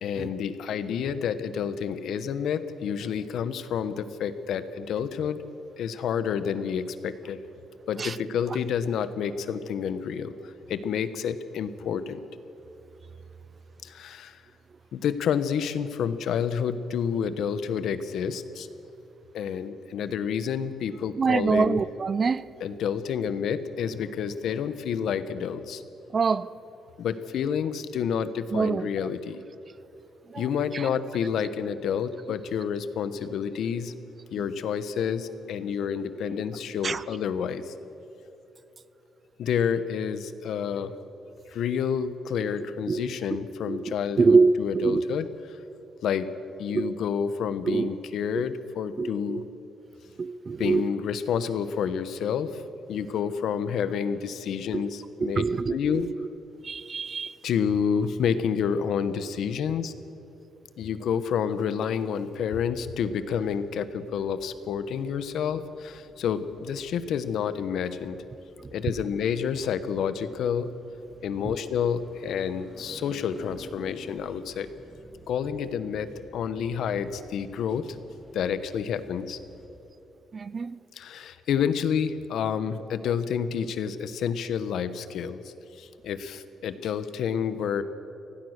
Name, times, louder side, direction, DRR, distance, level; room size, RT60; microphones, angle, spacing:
voice 1, 0.0-5.4 5.8-7.4 7.9-12.2 13.8-14.4 14.9-18.7 19.3-21.8 22.6-25.8 27.0-29.4 30.4-33.9 34.3-37.7 39.4-40.9 41.5-45.3 46.0-46.3 46.6-49.4 50.6-52.6 52.9-55.4 55.7-56.1 57.4-59.9 60.8-68.2 68.7-70.7 71.2-74.7 75.3-78.0 78.3-79.4 80.9-87.8, left 7 dB, 70° left, 12 dB, 1.1 m, -29 dB
voice 2, 21.2-22.4 26.1-26.5 28.5-28.9 30.3-30.4 30.7-30.9 36.8-37.0 42.9-43.0 43.7-45.0 46.7-46.9 47.7-47.9 48.4-48.5 49.0-49.4 50.2-50.9 54.7-54.9 55.2-56.1 56.6-57.4 80.3-80.8, right 4 dB, 30° right, 18 dB, 0.4 m, -25 dB
sound 1, 62.7-79.7, equal, 10° right, 2.9 m, -53 dB
25.0 x 17.0 x 6.6 m, 2.9 s
cardioid pair, 155°, 0 cm